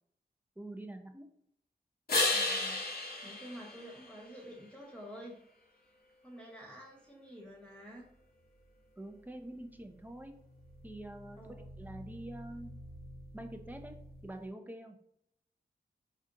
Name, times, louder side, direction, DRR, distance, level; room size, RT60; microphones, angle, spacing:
voice 1, 0.6-1.2 9.0-10.3 10.8-12.7 13.3-13.9 14.2-15.0, right 1 dB, 10° right, 5 dB, 0.5 m, -46 dB
sound 1, 2.1-4.6 10.4-14.4, left 2 dB, 70° left, 0.8 m, -37 dB
voice 2, 2.3-2.8 3.2-5.4 6.2-8.1 11.4-11.7, equal, 5° left, -3 dB, 1.2 m, -49 dB
4.3 x 2.4 x 2.6 m, 0.74 s
cardioid pair, 55°, 17 cm